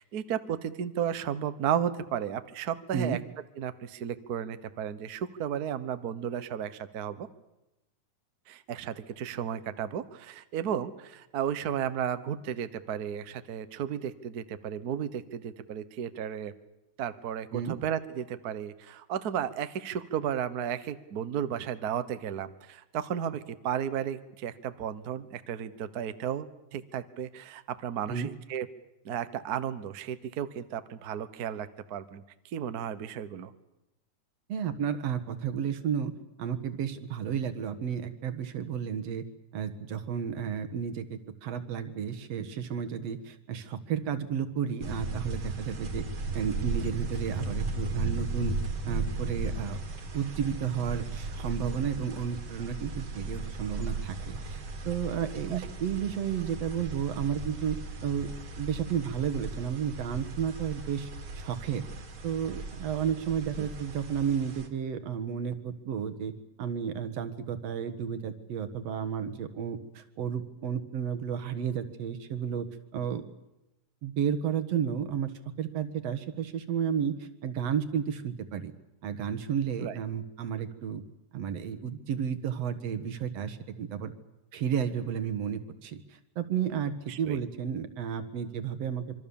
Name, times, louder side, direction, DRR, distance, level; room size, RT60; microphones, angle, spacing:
voice 1, 0.0-3.2 3.6-7.3 8.5-16.5 17.0-28.7 29.0-32.2 32.5-33.5 55.5-55.6 79.8-79.9 87.1-87.4, right 9 dB, 80° right, 12 dB, 0.8 m, -34 dB
voice 2, 34.5-36.1 36.4-39.2 39.5-46.0 46.3-48.6 48.8-49.8 50.1-58.3 58.6-61.9 62.2-66.3 66.6-72.7 72.9-73.3 74.0-75.3 75.6-78.7 79.0-81.0 81.3-84.1 84.5-89.0, right 8 dB, 60° right, 10 dB, 2.4 m, -32 dB
sound 1, 44.8-64.7, right 3 dB, 45° right, 2.6 m, -36 dB
26.0 x 24.5 x 7.1 m, 0.96 s
omnidirectional pair, 3.4 m